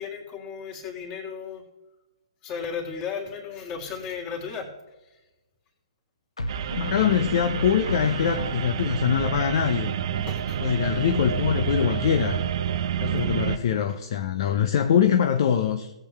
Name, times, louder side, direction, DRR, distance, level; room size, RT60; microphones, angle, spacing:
voice 1, 0.0-1.6 2.4-4.7 5.0-5.2 10.2-10.6 13.2-13.7, left 5 dB, 30° left, 0 dB, 3.3 m, -35 dB
sound 1, 3.7-4.2 6.4-9.0, equal, 80° left, 1.5 m, -35 dB
sound 2, 6.5-13.6, right 8 dB, 50° right, 0.7 m, -29 dB
voice 2, 6.8-10.3 10.6-12.4 13.0-15.9, left 8 dB, 50° left, 7 dB, 0.9 m, -23 dB
18.0 x 8.3 x 3.5 m, 1.1 s
figure-of-eight pair, 125°, 3 cm